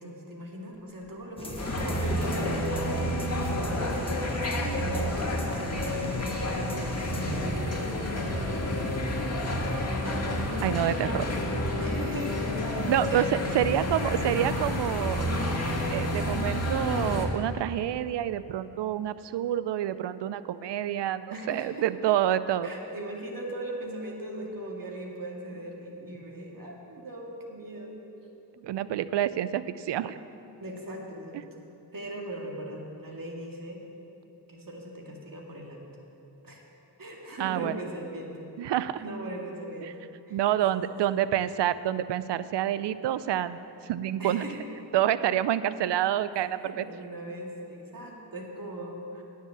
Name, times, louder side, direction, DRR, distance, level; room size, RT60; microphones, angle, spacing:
voice 1, 0.0-8.5 11.8-12.4 13.1-13.6 21.3-21.9 22.6-28.0 28.6-28.7 30.6-31.5 31.9-33.8 34.5-35.8 36.4-36.6 37.0-38.5 39.0-40.0 40.3-40.4 40.7-41.0 44.2-44.6 46.6-49.2, right 1 dB, 50° right, -1 dB, 2.2 m, -39 dB
Breathing, 0.7-1.1 1.4-1.5 2.4-2.6 2.8-3.8 4.4-5.1 5.5-6.5 7.1-7.8 8.3-9.3 9.9-10.5, left 2 dB, 55° left, 1.6 m, -42 dB
sound 1, 1.4-7.5, left 1 dB, 10° left, 1.4 m, -41 dB
sound 2, 1.6-17.3, left 1 dB, 35° left, 1.9 m, -29 dB
voice 2, 10.6-11.3 12.9-15.3 15.9-22.7 28.6-30.2 37.4-37.8 38.6-39.0 39.8-39.9 40.3-44.4 44.9-46.9, right 11 dB, 70° right, 15 dB, 0.5 m, -28 dB
9.6 x 7.5 x 7.1 m, 2.9 s
cardioid pair, 50°, 44 cm